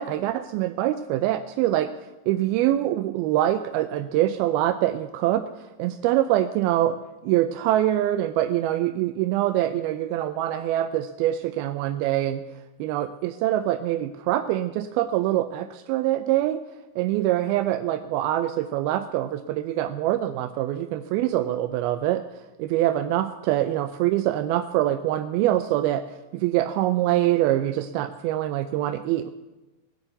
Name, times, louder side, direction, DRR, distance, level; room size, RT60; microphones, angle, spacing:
voice 1, 0.0-1.9 2.3-7.0 7.2-12.4 12.8-16.6 17.0-22.2 22.6-26.1 26.3-29.3, right 13 dB, 80° right, 10 dB, 2.3 m, -24 dB
18.5 x 7.2 x 7.9 m, 1.1 s
omnidirectional pair, 4.6 m